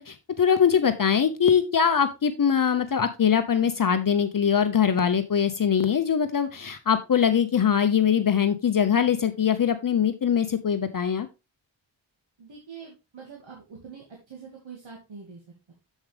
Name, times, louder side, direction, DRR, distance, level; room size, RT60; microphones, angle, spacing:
voice 1, 0.0-11.3, left 7 dB, 45° left, 9 dB, 0.7 m, -22 dB
voice 2, 12.4-15.4 15.7-15.8, right 6 dB, 80° right, -2 dB, 2.1 m, -44 dB
7.3 x 7.0 x 3.2 m, 0.26 s
wide cardioid pair, 105°, 46 cm